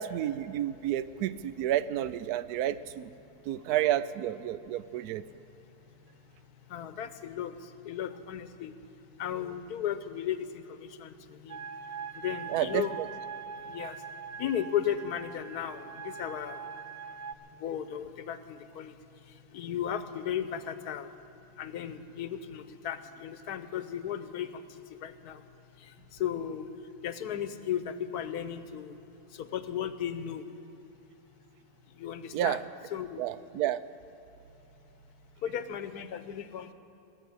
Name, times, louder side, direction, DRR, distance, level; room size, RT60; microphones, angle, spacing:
voice 1, 0.0-3.1 3.5-5.2 12.5-13.1 32.3-32.6 33.2-33.8, right 12 dB, 80° right, 15 dB, 1.1 m, -30 dB
voice 2, 6.7-8.7 9.2-11.6 12.1-12.9 13.7-14.0 14.4-16.6 17.6-18.9 19.5-21.1 21.6-24.6 25.0-25.4 25.8-26.7 27.0-29.0 29.3-30.5 32.0-32.6 32.9-33.2 35.4-36.7, left 9 dB, 80° left, 11 dB, 1.3 m, -35 dB
sound 1, 11.5-17.3, right 6 dB, 50° right, 0.5 m, -42 dB
20.0 x 8.2 x 8.6 m, 2.9 s
omnidirectional pair, 1.6 m